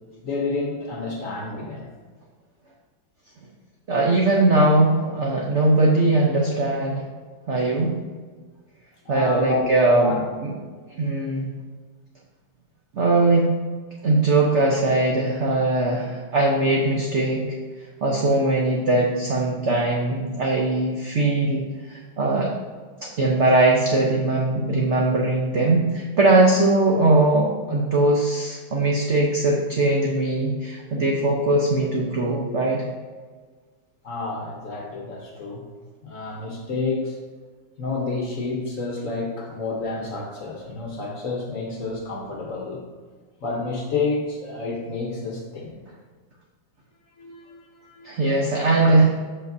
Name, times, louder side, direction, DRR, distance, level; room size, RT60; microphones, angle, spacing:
voice 1, 0.2-1.9 9.0-9.7 9.9-10.2 34.0-35.6 36.0-37.2 37.8-42.8 43.4-45.8 47.2-48.2, left 3 dB, 55° left, -1 dB, 1.0 m, -29 dB
voice 2, 3.9-7.0 7.5-7.9 9.1-10.5 11.0-11.5 12.9-13.5 14.0-17.4 18.0-22.5 23.0-32.8 48.0-49.1, right 2 dB, 70° right, -1 dB, 0.6 m, -20 dB
7.6 x 5.9 x 2.6 m, 1.5 s
omnidirectional pair, 2.1 m